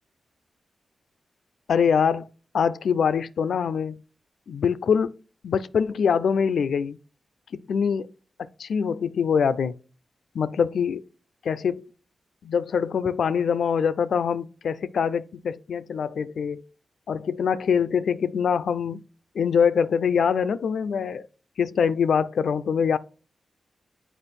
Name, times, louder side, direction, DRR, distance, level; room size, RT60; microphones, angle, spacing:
voice 1, 1.7-2.3 2.5-4.0 4.5-5.1 5.4-7.0 7.5-8.1 8.4-9.7 10.3-11.0 11.4-11.8 12.4-16.6 17.1-19.0 19.3-21.3 21.6-23.0, left 6 dB, 80° left, 0.3 m, -24 dB
7.9 x 4.6 x 4.2 m
supercardioid pair, 40°, 0 cm